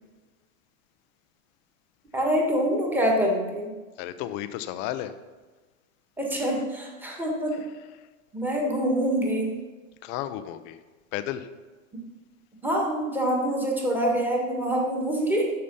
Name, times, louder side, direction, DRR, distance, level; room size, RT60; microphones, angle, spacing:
voice 1, 2.1-3.7 6.2-7.6 8.3-9.5 12.6-15.5, equal, 5° right, -1 dB, 1.6 m, -25 dB
voice 2, 4.0-5.1 10.0-10.8 11.1-11.5, left 12 dB, 30° left, 11 dB, 0.4 m, -33 dB
8.6 x 6.7 x 5.6 m, 1.3 s
supercardioid pair, 135°, 41 cm